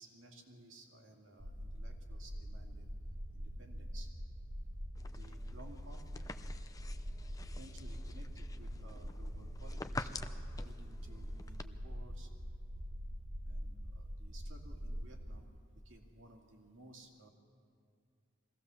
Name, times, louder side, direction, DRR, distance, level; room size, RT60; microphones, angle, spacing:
voice 1, 0.0-2.9 3.3-4.1 5.1-6.2 7.5-10.1 10.6-12.3 13.4-15.5 15.8-17.3, right 1 dB, 75° right, 2 dB, 2.3 m, -57 dB
sound 1, 1.4-15.4, equal, 45° right, 1.2 m, -44 dB
sound 2, 5.0-11.6, left 3 dB, 15° left, 0.5 m, -48 dB
23.0 x 17.0 x 7.0 m, 2.3 s
head